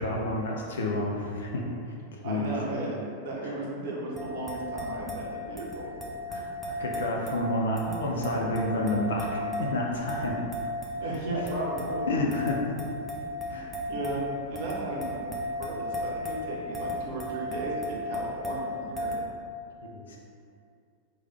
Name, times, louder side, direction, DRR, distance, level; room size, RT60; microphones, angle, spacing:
voice 1, 0.0-1.6 2.2-2.5 6.3-10.4 12.1-12.8 13.5-13.7 19.9-20.2, left 1 dB, 65° left, -1 dB, 0.3 m, -30 dB
voice 2, 2.2-2.9 3.2-6.0 11.0-12.2 13.9-15.2 15.6-19.1, right 2 dB, 55° right, -3 dB, 0.6 m, -35 dB
sound 1, 4.2-19.2, left 1 dB, 5° left, 0.5 m, -35 dB
3.1 x 2.2 x 3.1 m, 2.5 s
figure-of-eight pair, 90°, 0 cm